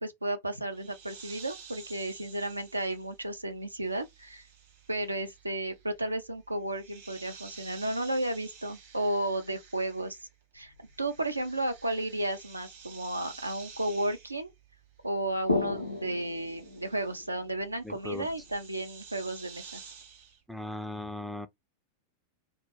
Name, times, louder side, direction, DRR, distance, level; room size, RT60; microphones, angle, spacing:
voice 1, 0.0-4.5 4.9-10.2 10.5-14.5 15.0-19.8, right 1 dB, 85° right, 0.5 m, -33 dB
sound 1, 0.7-10.4 10.7-20.4, right 6 dB, 55° right, 1.0 m, -52 dB
sound 2, 10.6-11.9 13.7-13.8 14.0-14.1 15.2-18.7, left 2 dB, 85° left, 0.5 m, -36 dB
voice 2, 17.8-18.3 20.5-21.5, left 1 dB, ahead, 0.3 m, -38 dB
2.2 x 2.1 x 3.0 m
figure-of-eight pair, 90°, 0 cm